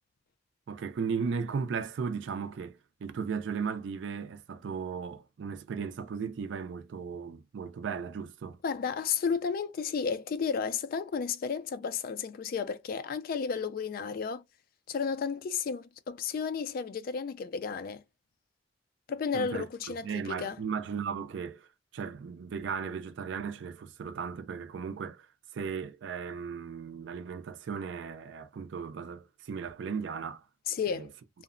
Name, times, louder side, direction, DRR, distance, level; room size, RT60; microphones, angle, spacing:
voice 1, 0.7-8.6 19.3-21.7 21.9-25.3 25.5-30.4 30.9-31.1, right 6 dB, 70° right, 0.3 m, -36 dB
voice 2, 8.6-14.4 14.9-18.0 19.1-20.6 30.7-31.1, left 6 dB, 50° left, 0.3 m, -32 dB
2.8 x 2.0 x 2.4 m
head